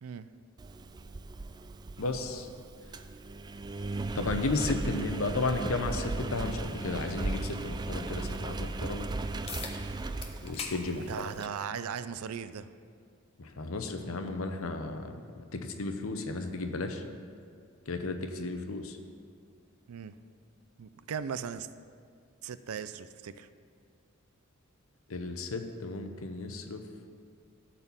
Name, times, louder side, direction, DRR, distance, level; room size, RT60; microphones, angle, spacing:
Engine, 0.6-11.5, right 3 dB, 20° right, 0.3 m, -37 dB
voice 1, 2.0-2.5 4.1-9.1 10.4-11.3 13.4-15.2 15.5-17.0 17.9-19.0 25.1-26.8, left 3 dB, 70° left, 6 dB, 0.8 m, -34 dB
sound 1, 9.5-9.8 10.2-10.8 11.2-11.3 12.4-12.5 17.4-17.5, left 5 dB, 30° left, 0.9 m, -40 dB
voice 2, 10.9-12.7 19.9-20.1 20.8-21.7 22.4-23.5, right 7 dB, 85° right, 13 dB, 0.4 m, -38 dB
12.5 x 4.3 x 7.1 m, 2.1 s
head